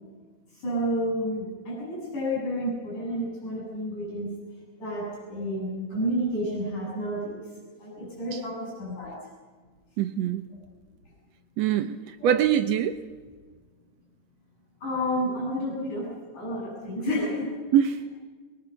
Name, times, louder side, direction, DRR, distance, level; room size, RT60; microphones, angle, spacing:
voice 1, 0.6-4.3 4.8-7.4 7.8-9.2 12.2-12.3 14.8-16.1 16.3-17.5, equal, 85° left, -4 dB, 9.6 m, -30 dB
voice 2, 10.0-10.4 11.6-13.0 17.7-18.0, right 10 dB, 70° right, 9 dB, 1.7 m, -24 dB
23.0 x 22.0 x 6.8 m, 1.4 s
omnidirectional pair, 3.5 m